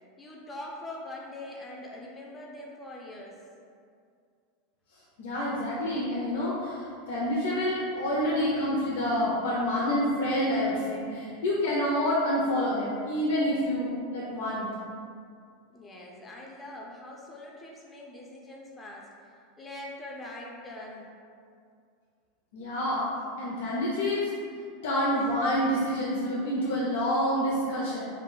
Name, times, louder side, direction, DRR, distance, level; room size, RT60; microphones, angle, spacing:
voice 1, 0.2-3.4 15.7-21.1 25.3-25.4, left 1 dB, 10° left, -2 dB, 0.3 m, -43 dB
voice 2, 4.9-14.7 22.5-23.1 23.4-24.3 24.8-28.0, equal, 75° left, -6 dB, 0.5 m, -28 dB
2.3 x 2.1 x 3.7 m, 2.3 s
supercardioid pair, 150°, 0 cm